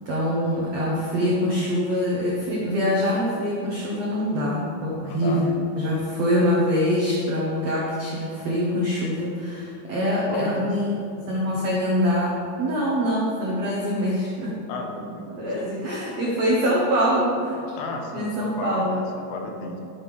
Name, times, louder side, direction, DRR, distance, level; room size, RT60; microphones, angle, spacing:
voice 1, 0.0-10.9 11.3-14.6 15.3-17.6 18.1-19.0, equal, 90° right, -5 dB, 1.4 m, -24 dB
voice 2, 5.1-5.6 10.3-10.7 14.7-15.3 15.6-15.7 17.8-19.8, left 2 dB, 90° left, 2 dB, 3.7 m, -33 dB
12.0 x 7.5 x 5.1 m, 2.8 s
omnidirectional pair, 5.4 m